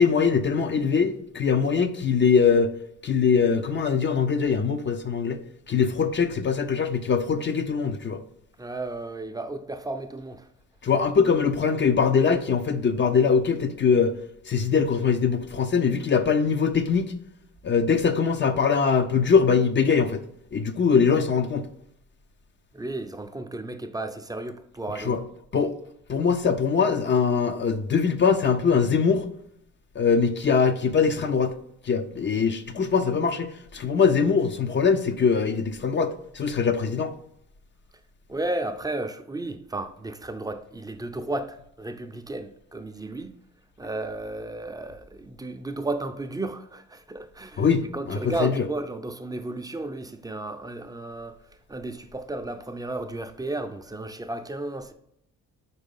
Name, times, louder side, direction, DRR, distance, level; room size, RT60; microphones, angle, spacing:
voice 1, 0.0-2.7 3.0-5.4 5.7-8.2 10.8-14.1 14.5-17.1 17.6-20.2 20.5-21.7 25.0-25.2 25.5-25.7 26.1-29.3 30.0-31.5 31.8-37.1 47.6-48.7, left 6 dB, 40° left, 0.6 m, -22 dB
voice 2, 8.6-10.5 22.7-25.3 38.3-43.3 43.8-51.4 51.7-54.9, right 2 dB, 10° right, 0.6 m, -33 dB
4.7 x 4.1 x 5.4 m
cardioid pair, 90°, 30 cm